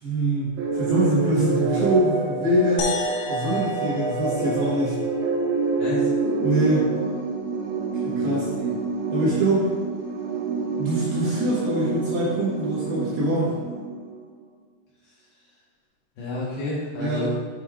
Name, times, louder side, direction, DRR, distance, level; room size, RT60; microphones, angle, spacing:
voice 1, 0.0-2.8 3.3-5.0 6.4-6.9 8.2-8.4 9.1-9.7 10.8-13.5 17.0-17.3, right 1 dB, 65° right, -8 dB, 2.9 m, -24 dB
sound 1, 0.6-14.3, right 3 dB, 90° right, 3.3 m, -27 dB
sound 2, 2.8-5.2, left 5 dB, 85° left, 2.5 m, -34 dB
voice 2, 5.8-6.1 8.1-8.7 16.2-17.3, left 2 dB, 65° left, -8 dB, 2.8 m, -31 dB
8.0 x 5.4 x 2.4 m, 1.4 s
omnidirectional pair, 5.6 m